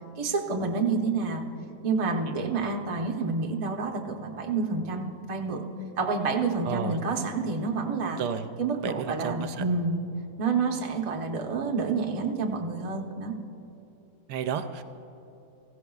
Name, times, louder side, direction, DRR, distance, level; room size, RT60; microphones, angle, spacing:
voice 1, 0.2-1.4 1.8-5.6 6.0-8.2 8.6-10.0 10.4-13.3, right 4 dB, 35° right, 1 dB, 0.5 m, -28 dB
voice 2, 6.7-7.0 8.2-8.4 8.8-9.6 14.3-14.8, right 7 dB, 75° right, 9 dB, 1.1 m, -31 dB
16.0 x 15.5 x 2.3 m, 3.0 s
omnidirectional pair, 1.9 m